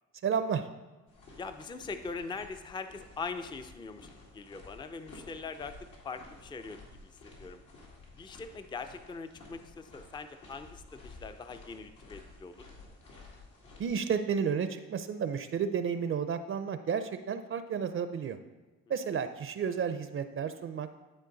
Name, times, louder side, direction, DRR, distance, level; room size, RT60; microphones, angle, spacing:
voice 1, 0.2-0.7 13.8-18.4 18.9-20.9, right 7 dB, 45° right, 10 dB, 0.5 m, -32 dB
sound 1, 1.1-13.9, left 2 dB, 80° left, 2.2 m, -53 dB
voice 2, 1.4-4.1 4.3-5.8 6.0-7.6 8.2-12.6, left 4 dB, 15° left, 9 dB, 0.4 m, -42 dB
11.0 x 4.5 x 3.9 m, 1.2 s
cardioid pair, 90°, 30 cm